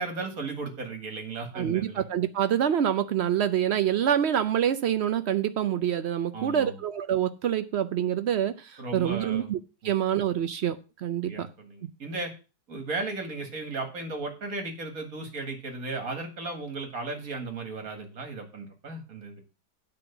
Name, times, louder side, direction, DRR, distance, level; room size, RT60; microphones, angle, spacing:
voice 1, 0.0-2.0 6.3-6.8 8.8-9.5 9.8-9.9 10.4-10.5 11.3-12.3 12.7-19.4, right 3 dB, 55° right, 4 dB, 2.4 m, -35 dB
voice 2, 1.5-9.6 9.8-11.5 11.8-11.9, right 10 dB, 80° right, 11 dB, 0.5 m, -26 dB
9.3 x 5.3 x 6.9 m, 0.31 s
omnidirectional pair, 1.8 m